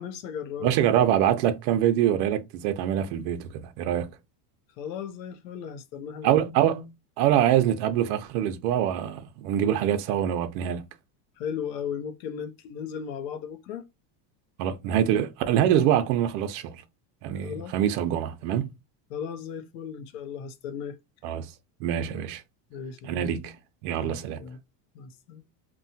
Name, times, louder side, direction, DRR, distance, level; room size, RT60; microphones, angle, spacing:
voice 1, 0.0-0.7 4.8-6.4 11.4-13.8 17.4-17.7 19.1-21.0 22.7-23.3 24.0-24.6 24.9-25.4, left 7 dB, 80° left, 0.8 m, -36 dB
voice 2, 0.6-4.1 6.2-6.9 7.2-10.8 14.6-16.8 17.2-18.7 21.2-21.5 21.8-22.4 23.0-23.5 23.8-24.4, right 10 dB, 65° right, 0.7 m, -24 dB
3.0 x 2.2 x 2.7 m
supercardioid pair, 135°, 50 cm